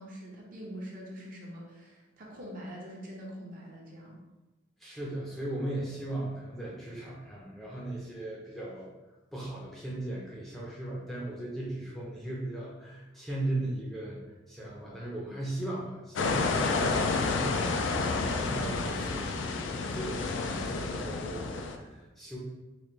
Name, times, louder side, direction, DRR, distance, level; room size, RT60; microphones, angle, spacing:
voice 1, 0.0-4.2 17.5-17.7 18.2-19.0, equal, 45° right, -3 dB, 0.8 m, -44 dB
voice 2, 4.8-8.9 9.3-17.9 18.3-22.4, right 1 dB, ahead, -5 dB, 0.6 m, -37 dB
sound 1, 16.2-21.8, left 3 dB, 75° left, 0.4 m, -30 dB
4.0 x 2.5 x 3.1 m, 1.1 s
head